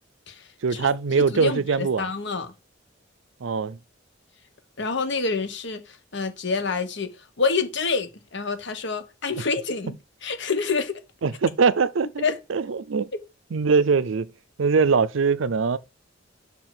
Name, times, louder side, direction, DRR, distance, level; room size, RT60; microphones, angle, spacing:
voice 1, 0.6-2.1 3.4-3.8 11.2-12.2 12.5-13.1 13.5-14.3 14.6-15.8, right 5 dB, 80° right, 0.5 m, -22 dB
voice 2, 1.2-2.5 4.8-11.0 12.2-12.4 13.1-13.2, left 4 dB, 65° left, 1.2 m, -27 dB
5.6 x 4.5 x 5.9 m
head